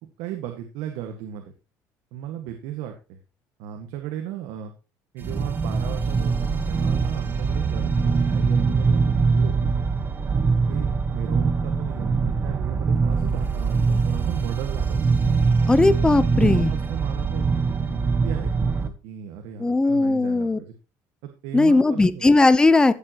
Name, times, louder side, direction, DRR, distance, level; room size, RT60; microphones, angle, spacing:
voice 1, 0.0-1.5 2.1-3.2 3.6-4.7 5.1-9.7 10.7-15.0 16.4-17.5 17.7-20.7 21.2-22.3, right 10 dB, 85° right, 4 dB, 1.8 m, -35 dB
sound 1, 5.2-18.9, right 4 dB, 30° right, 1.2 m, -23 dB
voice 2, 15.7-16.7 19.6-20.6 21.5-22.9, left 3 dB, 10° left, 14 dB, 0.9 m, -18 dB
15.5 x 7.5 x 3.0 m, 0.30 s
cardioid pair, 130°, 7 cm